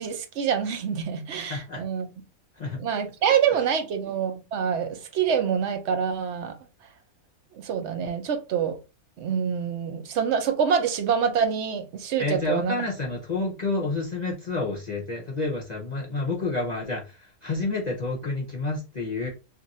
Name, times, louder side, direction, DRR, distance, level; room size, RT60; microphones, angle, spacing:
voice 1, 0.0-2.1 2.8-6.5 7.6-8.8 9.2-12.7, right 7 dB, 60° right, 0.8 m, -26 dB
voice 2, 1.5-1.8 2.6-2.8 12.2-19.3, left 3 dB, 45° left, 0.6 m, -29 dB
2.7 x 2.4 x 4.0 m
omnidirectional pair, 1.5 m